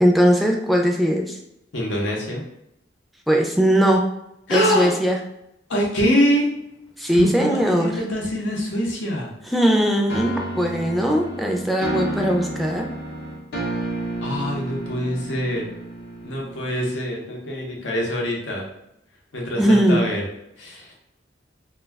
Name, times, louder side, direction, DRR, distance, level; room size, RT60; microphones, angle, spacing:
voice 1, 0.0-1.4 3.3-4.0 4.5-5.2 7.0-7.9 9.5-12.8 19.6-20.0, equal, ahead, 0 dB, 0.3 m, -19 dB
voice 2, 1.7-2.4 4.5-5.0 5.7-6.5 7.1-9.3 14.2-15.7 16.2-18.7 19.3-20.2 20.6-20.9, equal, 90° left, -1 dB, 0.8 m, -24 dB
sound 1, 10.1-16.9, right 1 dB, 55° left, 0.6 m, -31 dB
2.3 x 2.2 x 3.3 m, 0.83 s
head